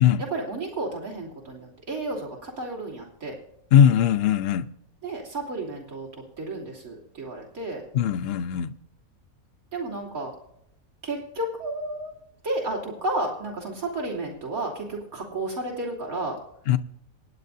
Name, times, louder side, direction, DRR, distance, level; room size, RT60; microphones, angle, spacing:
voice 1, 0.2-3.3 5.0-6.1 6.4-7.8 9.7-10.3 11.0-12.1 12.4-16.4, right 2 dB, 80° right, 3.4 m, -32 dB
voice 2, 3.7-4.7 7.9-8.7 16.7-16.8, left 9 dB, 55° left, 0.7 m, -19 dB
26.5 x 9.9 x 2.7 m
omnidirectional pair, 1.5 m